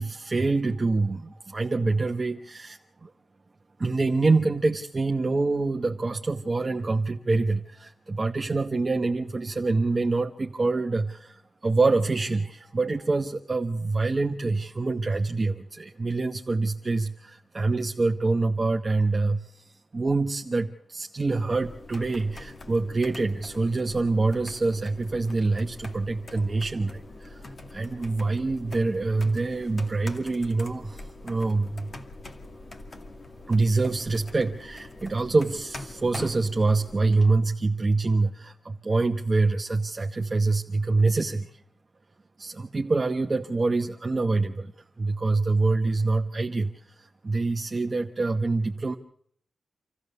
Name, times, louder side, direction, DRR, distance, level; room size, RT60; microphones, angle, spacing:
voice 1, 0.0-3.1 3.8-19.6 19.9-31.9 33.5-41.6 42.4-44.7 45.0-49.0, right 3 dB, 35° right, 3 dB, 1.0 m, -26 dB
sound 1, 21.5-37.3, left 2 dB, 45° left, 2.2 m, -44 dB
27.5 x 14.5 x 6.9 m, 0.66 s
wide cardioid pair, 105°, 0 cm